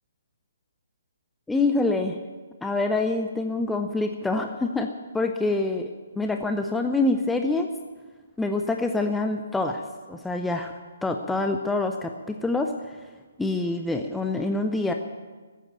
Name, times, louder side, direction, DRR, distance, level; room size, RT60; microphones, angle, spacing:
voice 1, 1.5-2.2 2.6-4.9 5.1-7.7 8.4-9.8 10.1-10.7 11.0-13.0 13.4-14.9, left 2 dB, 5° left, 4 dB, 0.6 m, -26 dB
15.0 x 9.3 x 8.8 m, 1.4 s
figure-of-eight pair, 135°, 0 cm